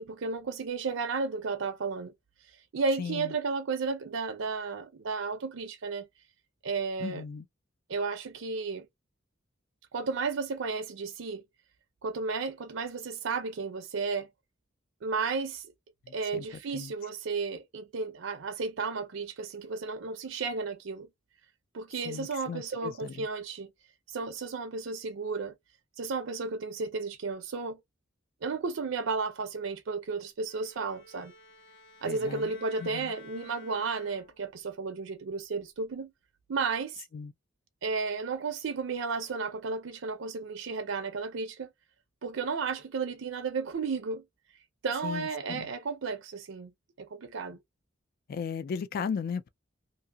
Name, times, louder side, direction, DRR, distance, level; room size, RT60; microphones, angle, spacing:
voice 1, 0.0-2.1 2.5-6.1 6.6-7.2 7.9-8.9 9.9-11.4 12.0-14.3 15.0-15.7 16.1-21.1 21.7-23.7 24.1-25.5 26.0-27.8 28.4-31.3 32.0-36.1 36.5-37.0 37.8-41.7 42.2-44.2 44.8-46.7 47.0-47.6, right 4 dB, 80° right, 0.5 m, -33 dB
voice 2, 3.0-3.3 7.0-7.5 16.1-16.5 16.7-16.9 22.0-23.3 32.0-32.5 32.8-33.1 37.1-37.3 45.0-45.7 48.3-49.5, left 6 dB, 50° left, 0.3 m, -36 dB
Bowed string instrument, 30.5-34.6, left 3 dB, 65° left, 0.9 m, -53 dB
2.7 x 2.7 x 2.2 m
head